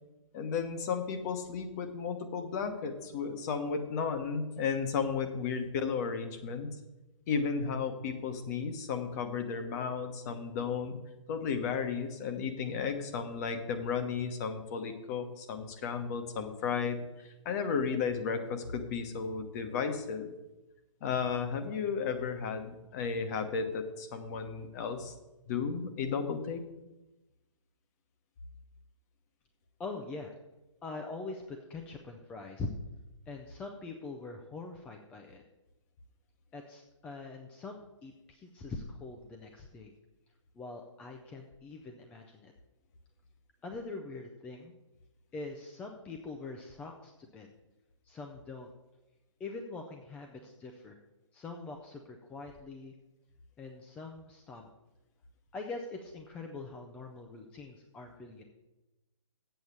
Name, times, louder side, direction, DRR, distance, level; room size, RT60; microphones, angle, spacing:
voice 1, 0.3-6.7 7.3-11.0 11.3-17.1 17.4-20.3 21.0-25.1 25.5-26.6, left 6 dB, 30° left, 7 dB, 1.1 m, -34 dB
voice 2, 29.8-30.3 30.8-32.7 33.3-35.4 36.5-37.8 38.0-39.9 40.6-42.5 43.6-44.8 45.3-47.5 48.1-48.7 49.4-51.0 51.3-52.9 53.6-54.7 55.5-58.4, left 3 dB, 5° left, 3 dB, 0.4 m, -43 dB
8.0 x 7.1 x 6.8 m, 1.0 s
hypercardioid pair, 145°, 17 cm